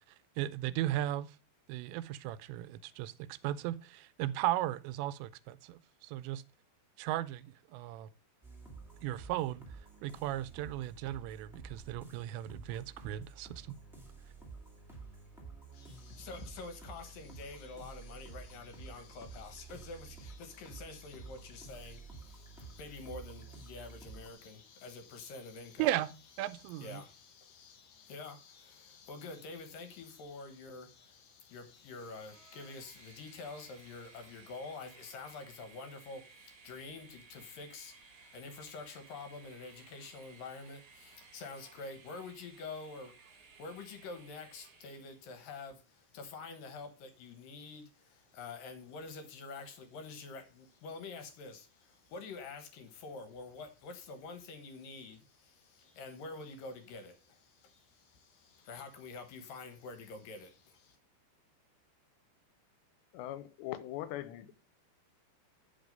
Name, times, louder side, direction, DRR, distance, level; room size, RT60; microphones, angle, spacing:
voice 1, 0.4-1.4 1.7-6.4 7.0-8.1 9.0-9.6 10.0-13.7 25.8-26.1 26.4-27.0, right 14 dB, 90° right, 2.9 m, -36 dB
sound 1, 8.4-24.3, right 4 dB, ahead, 0.6 m, -51 dB
voice 2, 15.7-25.9 26.4-61.0, left 4 dB, 65° left, 2.4 m, -47 dB
Train, 31.8-45.3, right 5 dB, 65° right, 2.1 m, -59 dB
voice 3, 63.1-64.5, left 13 dB, 85° left, 2.9 m, -41 dB
9.7 x 5.5 x 5.3 m
omnidirectional pair, 5.0 m